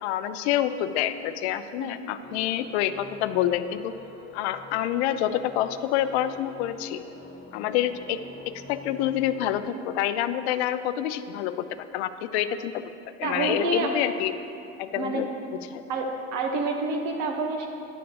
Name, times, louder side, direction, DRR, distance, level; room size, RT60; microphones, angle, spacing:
voice 1, 0.0-3.9 4.3-7.0 7.5-8.2 8.5-12.8 13.2-14.3 14.8-15.8, left 11 dB, 90° left, 12 dB, 0.5 m, -27 dB
sound 1, 2.2-9.6, left 4 dB, 35° left, 1.2 m, -46 dB
voice 2, 13.2-13.9 14.9-15.2 15.9-16.1 16.3-17.7, right 3 dB, 70° right, 3 dB, 1.3 m, -28 dB
11.0 x 3.9 x 6.9 m, 2.7 s
supercardioid pair, 95°, 31 cm